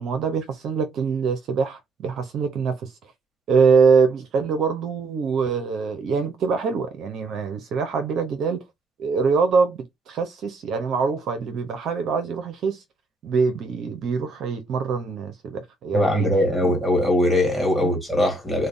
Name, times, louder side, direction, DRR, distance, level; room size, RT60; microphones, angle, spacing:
voice 1, 0.0-2.8 3.5-8.6 9.0-12.8 13.2-16.3 16.6-16.7 17.8-18.0, right 5 dB, 65° right, 0.8 m, -24 dB
voice 2, 15.9-18.7, left 1 dB, ahead, 1.9 m, -21 dB
3.2 x 2.2 x 3.8 m
supercardioid pair, 85°, 0 cm